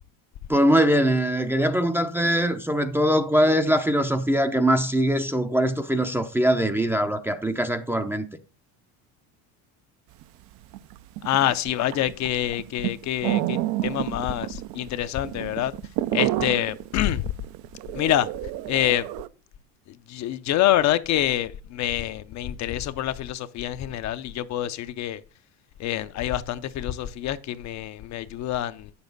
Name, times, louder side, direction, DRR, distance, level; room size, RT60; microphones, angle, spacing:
voice 1, 0.5-8.3, equal, 5° right, 0.5 m, -22 dB
sound 1, 10.2-10.3 10.5-19.3, right 15 dB, 70° right, 0.6 m, -29 dB
voice 2, 11.2-15.7 16.1-17.2 17.9-18.3 18.7-19.1 19.9-25.2 25.8-28.9, left 12 dB, 45° left, 0.6 m, -26 dB
9.1 x 7.0 x 3.9 m
cardioid pair, 130°, 38 cm